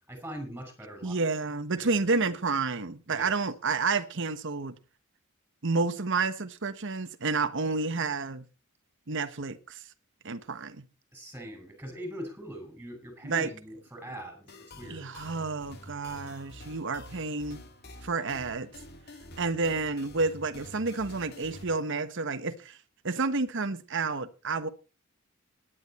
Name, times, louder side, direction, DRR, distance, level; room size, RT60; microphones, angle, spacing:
voice 1, 0.1-1.2 1.8-1.9 3.1-3.3 11.1-15.1, equal, 10° right, 6.1 m, -41 dB
voice 2, 1.0-4.8 5.6-8.5 9.1-9.8 10.2-10.9 13.2-13.5 14.8-17.6 18.0-18.7 19.4-22.8 23.0-24.7, right 4 dB, 60° right, 1.2 m, -30 dB
sound 1, 14.5-21.6, left 1 dB, 50° left, 2.6 m, -48 dB
18.0 x 10.5 x 4.3 m
head